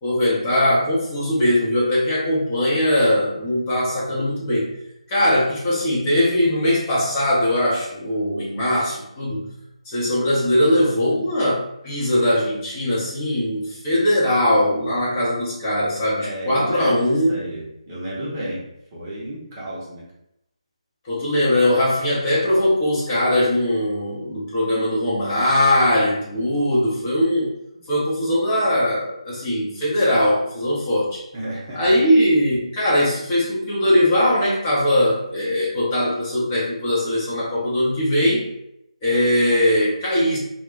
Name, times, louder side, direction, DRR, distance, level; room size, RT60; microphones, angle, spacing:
voice 1, 0.0-4.7 5.1-9.5 9.8-17.4 21.0-27.5 27.9-31.2 31.7-38.5 39.0-40.4, left 1 dB, 20° left, -8 dB, 0.8 m, -20 dB
voice 2, 16.2-18.6 18.9-20.1 31.3-32.0, right 1 dB, 25° right, -6 dB, 0.7 m, -31 dB
2.3 x 2.2 x 3.8 m, 0.82 s
figure-of-eight pair, 150°, 4 cm